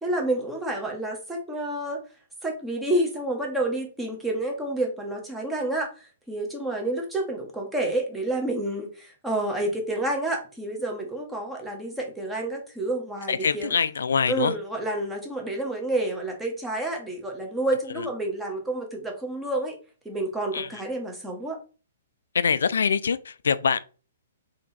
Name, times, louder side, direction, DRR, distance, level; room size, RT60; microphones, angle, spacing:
voice 1, 0.0-2.0 2.4-13.7 14.2-19.8 20.0-21.6, right 1 dB, 5° right, 1.1 m, -29 dB
voice 2, 13.3-14.6 17.9-18.1 20.5-20.7 22.3-23.9, left 6 dB, 80° left, 0.3 m, -24 dB
3.3 x 2.8 x 4.1 m
hypercardioid pair, 135°, 0 cm